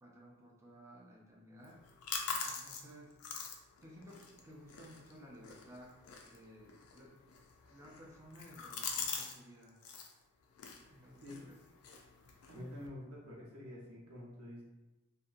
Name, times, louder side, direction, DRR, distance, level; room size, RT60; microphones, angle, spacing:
voice 1, 0.0-1.8 2.4-3.1 3.8-7.1 7.7-9.8 10.9-11.6, equal, 15° right, -3 dB, 0.4 m, -56 dB
sound 1, 1.6-9.4 9.6-10.1 10.5-12.9, left 5 dB, 85° left, 0.4 m, -44 dB
voice 2, 12.5-14.6, left 1 dB, 85° right, -5 dB, 0.8 m, -48 dB
2.6 x 2.2 x 2.5 m, 1.0 s
head